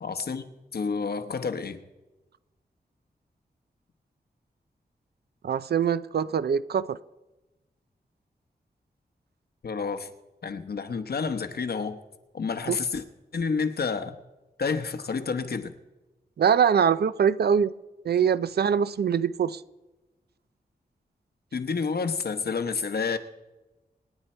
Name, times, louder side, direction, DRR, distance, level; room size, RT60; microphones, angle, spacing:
voice 1, 0.0-0.4 0.7-1.8 9.6-10.1 10.4-12.0 12.3-13.0 13.3-14.2 14.6-15.7 21.5-23.2, left 5 dB, 70° left, 9 dB, 1.1 m, -29 dB
voice 2, 5.4-7.0 12.7-12.8 16.4-17.7 18.0-19.6, right 7 dB, 70° right, 15 dB, 0.5 m, -23 dB
27.5 x 9.7 x 4.4 m, 1.1 s
wide cardioid pair, 90°, 17 cm